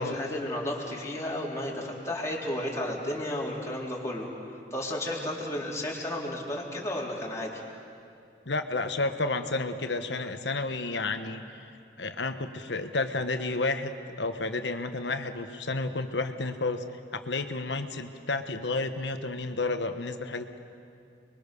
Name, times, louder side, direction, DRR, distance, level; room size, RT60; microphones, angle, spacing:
voice 1, 0.0-4.3 4.7-7.6, left 1 dB, 15° left, -4 dB, 3.8 m, -33 dB
voice 2, 8.4-11.6 12.0-16.8 17.1-20.6, left 3 dB, 70° left, 8 dB, 1.4 m, -31 dB
29.0 x 22.5 x 6.9 m, 2.4 s
head